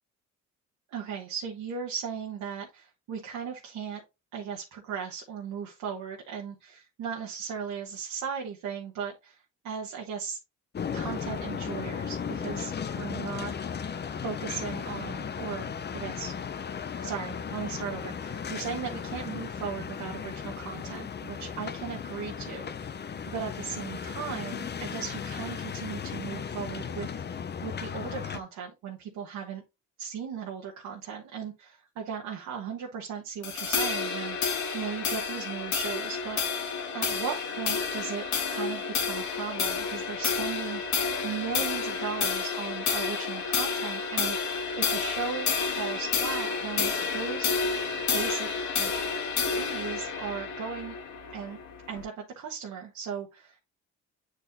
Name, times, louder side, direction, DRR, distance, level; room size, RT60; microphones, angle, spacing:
voice 1, 0.9-4.0 4.3-10.4 10.9-13.5 14.2-15.7 15.9-16.3 17.0-22.7 23.3-29.6 30.0-34.4 34.7-38.2 38.5-47.5 48.1-48.5 48.8-50.9 51.3-51.6 51.9-53.6, right 7 dB, 85° right, 1.3 m, -37 dB
sound 1, 10.7-28.4, left 7 dB, 35° left, 0.6 m, -36 dB
sound 2, 33.4-52.0, left 5 dB, 70° left, 1.7 m, -30 dB
9.0 x 4.2 x 2.6 m
cardioid pair, 90°, 30 cm